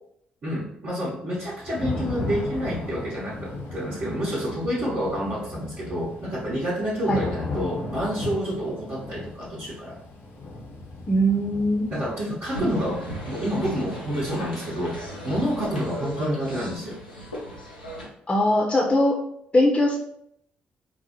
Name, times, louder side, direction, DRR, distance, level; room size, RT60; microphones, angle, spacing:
voice 1, 0.4-9.9 11.9-17.0, equal, 45° right, -8 dB, 1.0 m, -28 dB
Thunder / Rain, 1.3-17.1, left 2 dB, 60° left, 0.8 m, -37 dB
voice 2, 11.1-11.9 18.3-19.2 19.5-20.0, equal, 25° left, -2 dB, 0.7 m, -20 dB
sound 1, 12.4-18.1, equal, 90° left, 0.5 m, -36 dB
4.6 x 2.0 x 2.8 m, 0.73 s
figure-of-eight pair, 40°, 4 cm